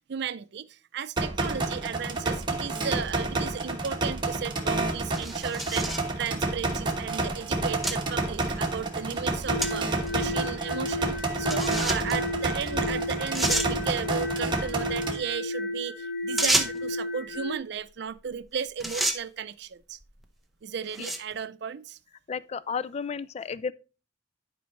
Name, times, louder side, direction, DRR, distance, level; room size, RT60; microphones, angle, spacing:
voice 1, 0.1-20.0 20.6-22.0, right 7 dB, 60° right, 0.5 m, -35 dB
sound 1, 1.2-15.2, right 2 dB, 25° right, 1.3 m, -29 dB
sound 2, 5.1-6.1 6.9-7.0 7.8-8.0 8.4-8.5 9.6-9.7 10.1-10.2 11.5-12.1 12.9-13.0 13.3-13.7 16.4-16.9 18.3-18.5 18.8-19.2 20.0-20.2 20.9-21.3, right 1 dB, ahead, 0.8 m, -28 dB
sound 3, 9.5-17.6, left 1 dB, 60° left, 1.8 m, -33 dB
voice 2, 22.3-23.7, left 6 dB, 35° left, 0.3 m, -32 dB
11.0 x 5.2 x 3.1 m
head